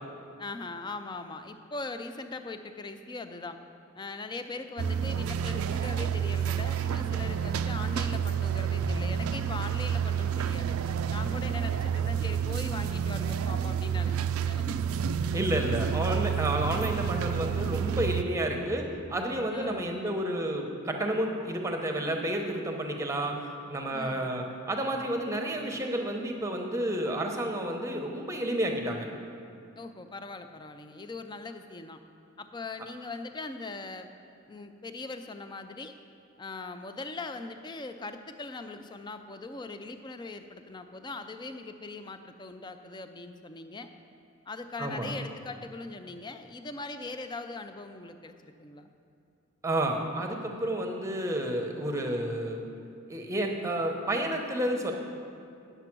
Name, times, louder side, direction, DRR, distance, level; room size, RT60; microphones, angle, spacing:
voice 1, 0.4-3.6 4.0-10.8 11.1-14.8 16.4-16.8 19.5-19.9 23.9-24.3 29.8-32.0 32.4-34.1 34.5-35.9 36.4-43.9 44.5-48.9, left 3 dB, 20° left, 8 dB, 0.4 m, -40 dB
sound 1, 4.8-18.2, right 8 dB, 85° right, 0.4 m, -29 dB
voice 2, 15.3-23.3 23.7-29.1 44.8-45.1 49.6-52.6 53.1-54.9, right 1 dB, 15° right, 3 dB, 0.8 m, -30 dB
9.9 x 6.8 x 6.0 m, 2.5 s
head